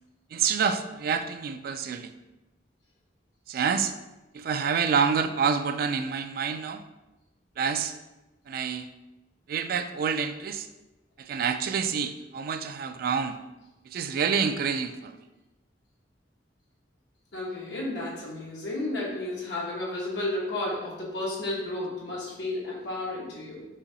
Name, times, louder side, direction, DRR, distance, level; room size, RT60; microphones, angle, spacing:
voice 1, 0.3-2.1 3.5-3.9 4.3-6.8 7.6-7.9 8.5-8.9 9.5-10.7 11.2-13.4 13.8-15.2, right 6 dB, 55° right, 9 dB, 0.3 m, -27 dB
voice 2, 17.3-23.6, left 2 dB, 75° left, -5 dB, 1.1 m, -32 dB
4.3 x 2.7 x 3.9 m, 1.0 s
head